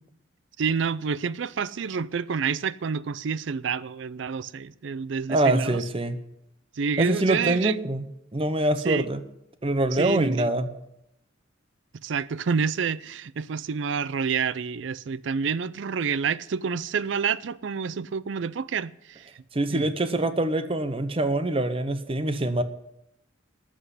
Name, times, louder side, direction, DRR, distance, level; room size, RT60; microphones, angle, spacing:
voice 1, 0.6-5.8 6.8-7.8 8.8-9.0 9.9-10.5 12.0-19.3 19.7-19.9, right 6 dB, 70° right, 0.4 m, -28 dB
voice 2, 5.3-6.2 7.0-8.0 8.3-9.2 9.6-10.7 19.5-22.6, right 1 dB, 30° right, 0.8 m, -24 dB
13.0 x 6.3 x 9.8 m
head